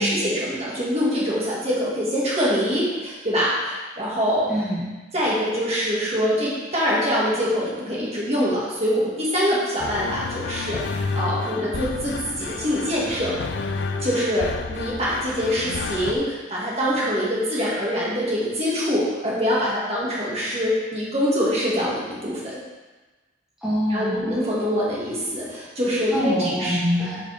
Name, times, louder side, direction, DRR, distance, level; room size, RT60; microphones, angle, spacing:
voice 1, 0.0-4.5 5.1-13.3 14.0-22.4 23.9-26.8, equal, 35° right, -6 dB, 2.0 m, -24 dB
voice 2, 4.5-4.9 23.6-24.3 26.1-27.3, equal, 5° right, -9 dB, 1.2 m, -25 dB
sound 1, 9.8-16.1, left 4 dB, 60° left, 0.5 m, -30 dB
8.6 x 5.3 x 3.5 m, 1.2 s
head